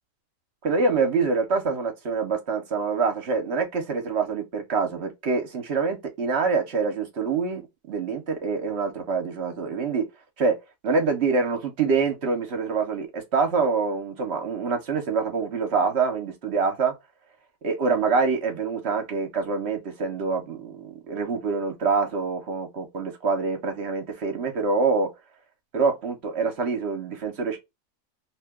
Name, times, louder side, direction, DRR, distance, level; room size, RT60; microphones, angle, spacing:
voice 1, 0.6-7.6 7.9-10.1 10.4-10.6 10.8-16.9 17.6-25.1 25.7-27.6, right 4 dB, 50° right, 0.9 m, -25 dB
2.8 x 2.2 x 3.5 m
omnidirectional pair, 1.7 m